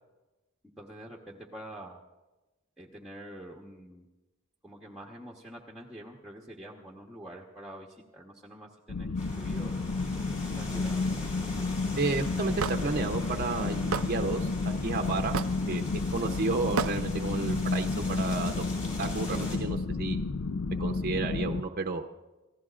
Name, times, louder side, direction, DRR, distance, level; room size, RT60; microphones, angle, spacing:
voice 1, 0.8-2.0 2.8-4.1 4.6-9.8 10.4-11.1, right 1 dB, ahead, -2 dB, 1.1 m, -46 dB
sound 1, 8.9-21.6, left 3 dB, 65° left, 0.5 m, -31 dB
sound 2, 9.1-19.6, left 2 dB, 35° left, 4.2 m, -43 dB
voice 2, 12.0-15.3 15.7-15.8 16.1-18.6 19.0-20.2 20.8-22.1, right 3 dB, 45° right, 4 dB, 0.8 m, -32 dB
Hammer / Wood, 12.6-12.8 13.9-14.1 15.3-15.6 16.8-17.0, right 6 dB, 85° right, 0.5 m, -29 dB
29.5 x 15.5 x 2.5 m, 1.1 s
head